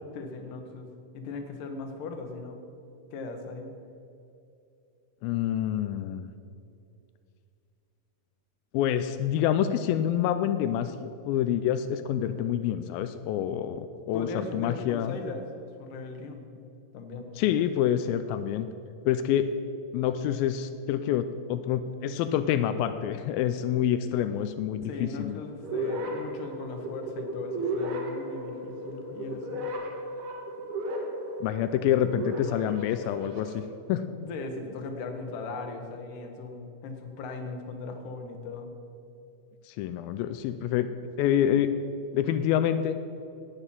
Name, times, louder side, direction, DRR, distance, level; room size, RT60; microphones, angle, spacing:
voice 1, 0.1-0.9 1.1-2.6 3.1-3.7 14.1-15.5 15.8-16.5 16.9-17.3 24.8-29.7 34.2-38.7, left 3 dB, 65° left, 5 dB, 2.4 m, -38 dB
voice 2, 5.2-6.3 8.7-15.2 17.4-18.7 19.1-19.5 19.9-25.4 31.4-34.2 39.7-40.9 41.2-41.7 42.1-43.0, left 10 dB, 85° left, 10 dB, 2.1 m, -27 dB
sound 1, 25.6-33.6, right 1 dB, 75° right, 3.5 m, -35 dB
10.5 x 9.0 x 7.4 m, 2.6 s
omnidirectional pair, 4.7 m